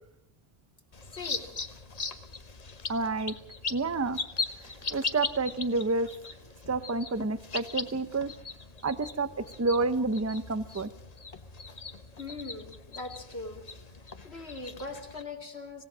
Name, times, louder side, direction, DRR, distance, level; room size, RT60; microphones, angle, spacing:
sound 1, 0.9-15.2, left 4 dB, 40° left, 1.2 m, -39 dB
voice 1, 1.1-1.4 12.2-13.6 14.2-15.8, left 3 dB, 90° left, 3 dB, 3.0 m, -40 dB
voice 2, 2.9-3.4 3.7-4.2 4.9-6.1 6.7-8.3 8.8-10.9, right 3 dB, 15° right, 14 dB, 0.7 m, -29 dB
26.5 x 17.0 x 6.2 m, 0.74 s
omnidirectional pair, 1.0 m